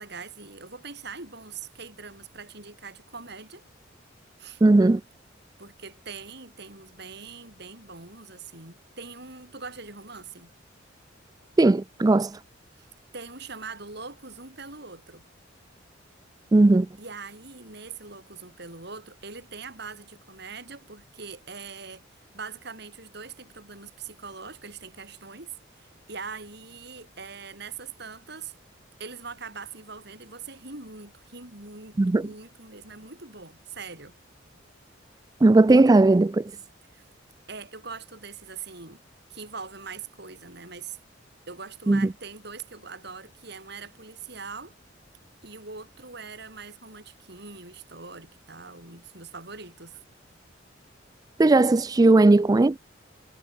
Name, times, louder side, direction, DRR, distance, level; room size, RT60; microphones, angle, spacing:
voice 1, 0.0-3.6 4.4-4.6 5.6-10.5 12.7-12.9 13.1-15.2 17.0-28.5 29.0-34.2 36.9-37.0 37.5-39.0 39.3-41.0 41.5-44.7 45.4-50.0, right 4 dB, 60° right, 7.2 m, -42 dB
voice 2, 4.6-5.0 11.6-12.4 16.5-16.9 32.0-32.2 35.4-36.5 41.9-42.1 51.4-52.8, right 2 dB, 20° right, 0.3 m, -17 dB
head